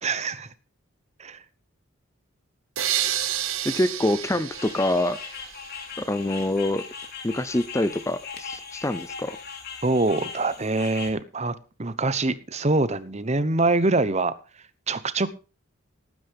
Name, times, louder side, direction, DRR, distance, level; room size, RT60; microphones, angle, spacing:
voice 1, 0.0-0.5 1.2-1.4 9.8-14.3 14.9-15.3, right 2 dB, 30° right, 0.9 m, -24 dB
sound 1, 2.8-5.8, right 11 dB, 80° right, 1.4 m, -30 dB
voice 2, 3.6-5.2 6.0-6.8 7.2-9.4, left 1 dB, 15° left, 0.6 m, -25 dB
sound 2, 4.5-11.1, left 5 dB, 50° left, 2.9 m, -39 dB
18.5 x 9.4 x 3.6 m
head